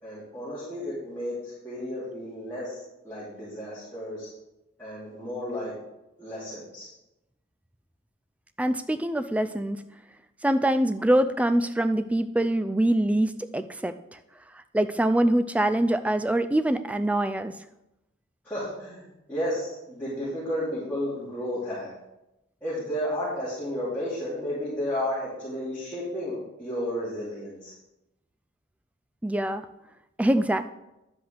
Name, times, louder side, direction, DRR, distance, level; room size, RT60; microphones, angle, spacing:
voice 1, 0.0-2.8 3.0-4.3 4.8-5.7 6.2-6.9 18.4-19.0 19.3-21.9 22.6-27.7, equal, 10° left, -11 dB, 2.8 m, -32 dB
voice 2, 8.6-9.8 10.4-13.9 14.7-17.5 29.2-29.7 30.2-30.6, right 1 dB, 5° right, 10 dB, 0.3 m, -24 dB
10.5 x 7.9 x 3.4 m, 0.92 s
head